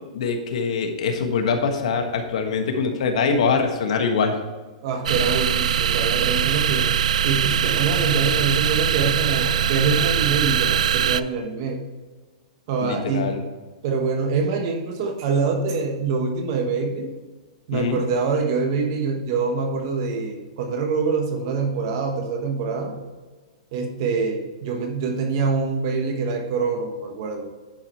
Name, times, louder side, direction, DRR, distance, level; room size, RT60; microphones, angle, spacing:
voice 1, 0.1-4.4 12.8-13.4 17.7-18.0, left 5 dB, 65° left, 4 dB, 1.5 m, -23 dB
voice 2, 4.8-6.9 7.2-11.8 12.7-13.3 13.8-17.1 17.7-23.0 23.7-27.5, right 4 dB, 40° right, 4 dB, 1.3 m, -25 dB
sound 1, 5.1-11.2, right 9 dB, 85° right, 0.3 m, -22 dB
10.5 x 4.8 x 4.5 m, 1.3 s
hypercardioid pair, 170°, 4 cm